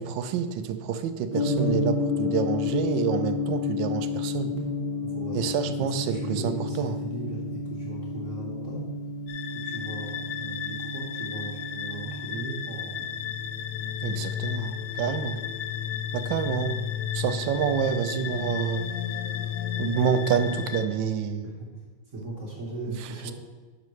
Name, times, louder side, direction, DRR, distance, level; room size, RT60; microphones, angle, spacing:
voice 1, 0.0-4.5 5.3-7.0 14.0-15.4 16.1-16.8 17.1-18.9 19.8-21.5 23.3-23.4, right 8 dB, 75° right, 10 dB, 1.2 m, -28 dB
Gong, 1.3-15.5, left 3 dB, 20° right, 0.9 m, -31 dB
voice 2, 5.0-8.9 9.5-13.0 21.4-21.7 22.1-23.3, right 2 dB, 40° right, -4 dB, 1.5 m, -38 dB
sound 1, 9.3-20.9, left 9 dB, 75° left, 1.0 m, -33 dB
10.0 x 6.6 x 3.1 m, 1.3 s
omnidirectional pair, 2.2 m